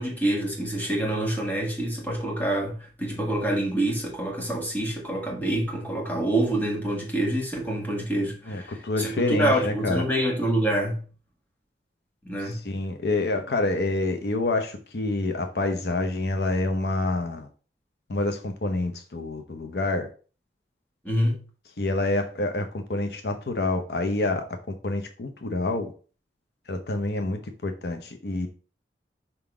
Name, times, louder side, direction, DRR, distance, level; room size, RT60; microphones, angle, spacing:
voice 1, 0.0-11.0 12.2-12.6 21.0-21.4, right 1 dB, 10° left, 1.7 m, -26 dB
voice 2, 8.5-10.0 12.4-17.5 18.1-20.1 21.8-24.5 24.8-25.9 26.7-28.5, left 2 dB, 65° left, 0.7 m, -27 dB
5.7 x 3.8 x 4.8 m
head